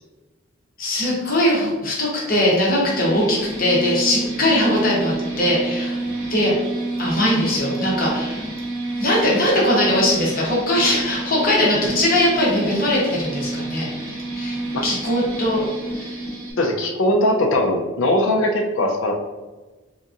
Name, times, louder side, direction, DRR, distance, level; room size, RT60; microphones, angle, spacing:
voice 1, 0.8-6.0 6.3-6.5 7.0-8.4 9.0-13.9 14.3-15.6 15.9-16.2, left 1 dB, 45° left, -5 dB, 1.0 m, -20 dB
sound 1, 2.8-16.5, right 2 dB, 85° right, 1.3 m, -29 dB
voice 2, 16.6-19.1, left 1 dB, 65° left, 1 dB, 0.5 m, -20 dB
3.5 x 2.8 x 2.5 m, 1.2 s
head